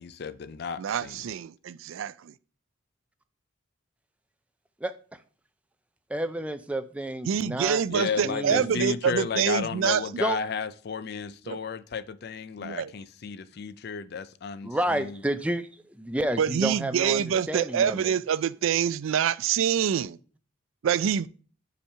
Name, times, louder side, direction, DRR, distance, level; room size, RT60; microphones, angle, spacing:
voice 1, 0.0-1.2 7.9-15.2, left 5 dB, 50° left, 0.4 m, -33 dB
voice 2, 0.8-2.3 7.3-10.0 11.5-11.6 12.6-12.9 16.4-20.2 20.8-21.3, right 8 dB, 75° right, 0.4 m, -26 dB
voice 3, 6.1-7.8 8.2-8.7 10.2-10.4 14.6-15.7 16.0-18.1, right 1 dB, 5° right, 0.4 m, -30 dB
5.5 x 5.0 x 5.5 m
head